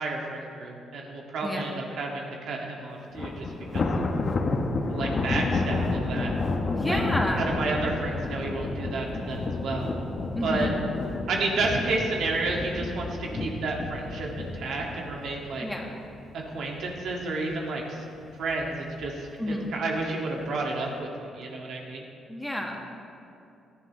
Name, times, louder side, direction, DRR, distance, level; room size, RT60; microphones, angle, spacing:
voice 1, 0.0-3.5 3.7-4.1 4.9-6.3 6.9-7.0 7.4-9.9 10.4-10.7 11.3-15.7 16.3-18.0 18.4-22.1, right 3 dB, 70° right, -1 dB, 2.0 m, -31 dB
Thunder, 3.1-16.4 16.8-17.1 17.5-17.6 18.5-19.1, left 3 dB, 40° left, 1.0 m, -30 dB
voice 2, 6.7-7.5 10.4-10.8 15.6-15.9 19.4-19.7 22.3-22.9, left 1 dB, 5° left, 0 dB, 1.6 m, -30 dB
17.5 x 11.5 x 3.2 m, 2.6 s
cardioid pair, 90°, 0 cm